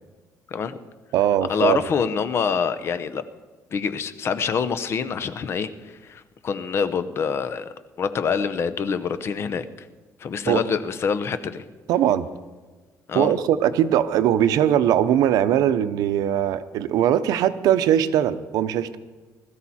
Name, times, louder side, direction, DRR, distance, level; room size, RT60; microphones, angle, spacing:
voice 1, 0.5-0.8 1.5-3.2 3.7-5.7 6.0-9.6 10.2-11.6 13.1-13.3, left 6 dB, 40° left, 12 dB, 0.8 m, -25 dB
voice 2, 1.1-1.8 10.5-10.6 11.9-12.3 13.1-19.0, right 10 dB, 85° right, 13 dB, 0.7 m, -20 dB
20.5 x 13.5 x 4.3 m, 1.3 s
cardioid pair, 155°, 6 cm